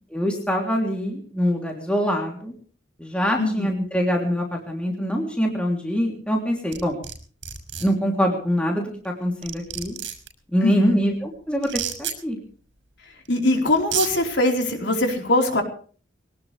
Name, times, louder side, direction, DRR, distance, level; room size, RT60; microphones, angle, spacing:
voice 1, 0.1-2.5 3.0-7.0 7.8-10.0 10.5-12.4, equal, 5° left, 0 dB, 3.2 m, -24 dB
sound 1, 6.7-7.1 7.4-7.8 9.0-9.1 9.4-10.3 11.6-12.1 13.3-13.4 13.8-14.1, right 10 dB, 75° right, 6.3 m, -29 dB
voice 2, 10.6-11.0 13.3-15.6, left 2 dB, 65° left, 3 dB, 4.4 m, -21 dB
22.5 x 18.5 x 3.4 m, 0.43 s
head